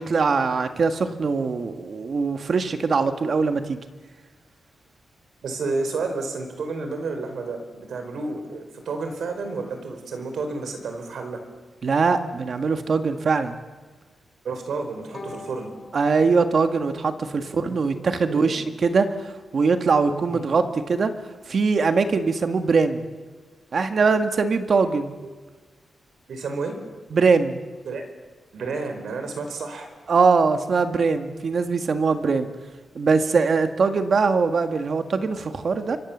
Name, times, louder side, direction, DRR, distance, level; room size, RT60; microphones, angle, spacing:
voice 1, 0.0-3.8 11.8-13.6 15.9-21.1 21.5-23.0 23.7-25.1 27.1-27.6 30.1-32.5 33.0-36.0, right 4 dB, 45° right, 8 dB, 1.7 m, -22 dB
voice 2, 5.4-11.4 14.4-15.7 17.6-18.5 20.3-20.6 26.3-26.7 27.8-28.0 28.5-29.9, right 3 dB, 70° right, 6 dB, 4.8 m, -31 dB
Bowed string instrument, 15.1-18.2, left 2 dB, 30° left, 5.4 m, -44 dB
28.5 x 24.5 x 7.4 m, 1.4 s
wide cardioid pair, 170°, 0 cm